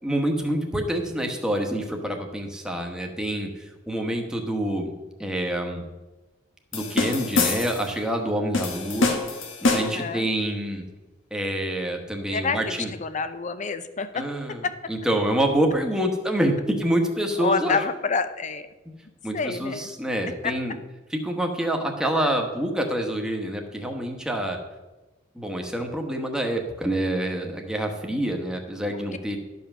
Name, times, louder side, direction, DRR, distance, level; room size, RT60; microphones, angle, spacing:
voice 1, 0.0-4.9 5.2-5.8 6.7-9.2 9.6-10.8 11.3-12.9 14.1-17.8 19.2-20.7 21.1-24.6 25.3-29.4, right 1 dB, 5° right, 2 dB, 1.2 m, -27 dB
sound 1, 6.7-7.9 8.5-10.1, left 3 dB, 85° left, 1.4 m, -25 dB
voice 2, 9.7-10.3 12.3-14.2 14.6-14.8 17.4-18.6 19.3-19.9 20.4-20.5, left 5 dB, 40° left, 11 dB, 0.6 m, -28 dB
12.0 x 5.6 x 6.1 m, 1.1 s
head